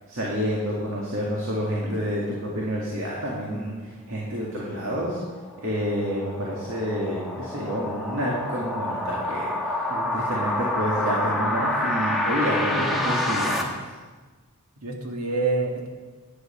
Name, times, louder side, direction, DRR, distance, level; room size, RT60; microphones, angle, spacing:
voice 1, 0.1-5.2 5.6-9.8 10.1-13.8, equal, 65° right, -4 dB, 2.1 m, -29 dB
sound 1, 5.2-13.6, left 1 dB, ahead, 1.2 m, -28 dB
voice 2, 12.7-13.0 14.8-15.9, right 3 dB, 85° right, 1 dB, 2.0 m, -28 dB
10.5 x 9.6 x 5.7 m, 1.4 s
head